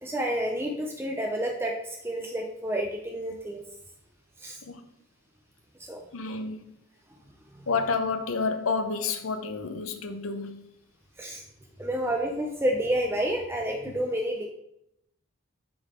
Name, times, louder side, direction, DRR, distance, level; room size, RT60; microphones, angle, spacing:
voice 1, 0.0-3.6 4.4-4.6 5.9-6.0 7.5-7.7 11.2-11.4 11.8-14.5, right 1 dB, 10° right, 0.5 m, -29 dB
voice 2, 6.1-6.7 7.7-10.7 13.9-14.0, left 4 dB, 75° left, 0.7 m, -30 dB
8.6 x 3.9 x 3.5 m
head